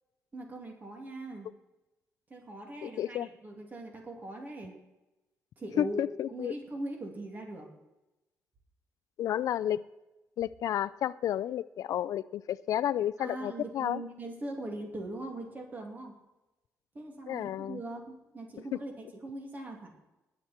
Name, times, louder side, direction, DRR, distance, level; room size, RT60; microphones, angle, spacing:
voice 1, 0.3-1.5 2.3-4.8 5.6-7.7 13.2-16.1 16.9-19.9, right 1 dB, 30° right, 2 dB, 2.7 m, -41 dB
voice 2, 2.8-3.3 5.8-6.5 9.2-9.8 10.4-14.0 17.3-17.8, left 11 dB, 70° left, 17 dB, 0.4 m, -31 dB
20.0 x 8.0 x 4.4 m, 1.0 s
cardioid pair, 130°, 6 cm